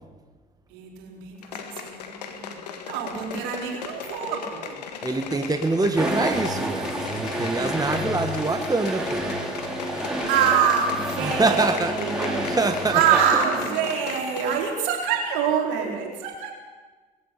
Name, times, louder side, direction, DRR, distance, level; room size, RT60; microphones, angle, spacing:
voice 1, 0.7-2.6 2.9-4.8 10.3-12.6 12.9-16.5, right 7 dB, 75° right, 0 dB, 4.4 m, -25 dB
sound 1, 1.4-14.7 15.0-15.1, left 6 dB, 90° left, 1.8 m, -37 dB
voice 2, 5.0-9.3 11.2-13.0, right 3 dB, 20° right, 6 dB, 1.9 m, -25 dB
sound 2, 6.0-14.2, equal, 5° right, 5.7 m, -30 dB
20.0 x 15.0 x 8.5 m, 1.4 s
hypercardioid pair, 60°, 20 cm